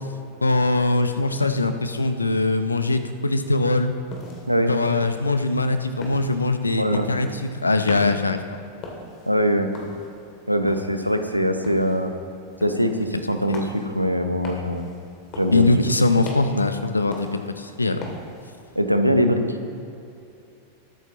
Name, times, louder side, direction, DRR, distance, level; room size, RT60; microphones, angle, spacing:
voice 1, 0.4-3.9 4.7-7.3 7.6-8.4 13.5-13.6 15.5-18.1, left 2 dB, 80° left, 9 dB, 0.7 m, -22 dB
sound 1, 3.9-18.8, left 2 dB, 35° left, 2.5 m, -41 dB
voice 2, 6.8-7.1 9.3-9.7 10.5-12.1 12.6-14.9 15.4-15.7 18.8-19.6, equal, 90° right, 7 dB, 0.8 m, -22 dB
21.0 x 8.9 x 3.0 m, 2.7 s
figure-of-eight pair, 90°, 0 cm